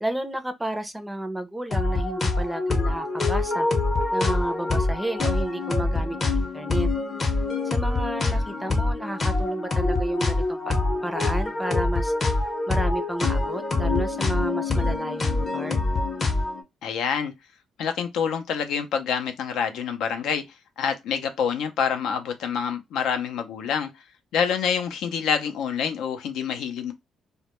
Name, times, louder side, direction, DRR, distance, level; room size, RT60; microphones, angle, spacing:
voice 1, 0.0-3.7 4.1-6.9 7.6-10.8 11.0-12.1 12.7-15.8, right 1 dB, 5° right, 0.4 m, -31 dB
sound 1, 1.7-16.6, left 3 dB, 35° left, 0.6 m, -25 dB
voice 2, 16.8-17.3 17.8-20.4 20.8-23.9 24.3-26.9, left 7 dB, 85° left, 0.4 m, -27 dB
2.1 x 2.1 x 2.9 m
cardioid pair, 90°, 0 cm